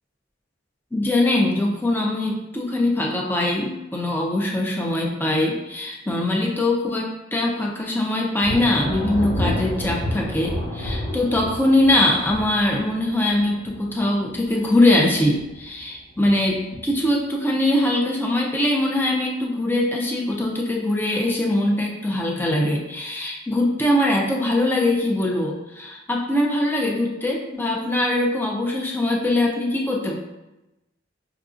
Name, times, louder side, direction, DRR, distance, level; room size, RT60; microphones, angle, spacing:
voice 1, 0.9-30.2, left 1 dB, 10° left, -1 dB, 0.4 m, -22 dB
Thunder, 8.4-14.9 15.2-15.8 16.2-17.1, left 1 dB, 30° left, 1.2 m, -30 dB
5.5 x 2.5 x 2.4 m, 0.96 s
head